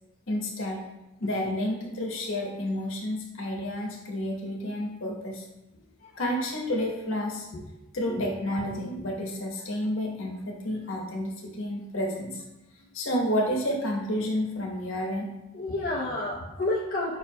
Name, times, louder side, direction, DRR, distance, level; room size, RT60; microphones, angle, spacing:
voice 1, 0.3-0.8 1.2-5.4 6.2-7.5 7.9-12.4 12.9-15.3, equal, 65° left, 0 dB, 0.9 m, -30 dB
voice 2, 15.5-17.2, left 2 dB, 45° left, -4 dB, 0.4 m, -30 dB
5.3 x 2.1 x 4.4 m, 0.96 s
head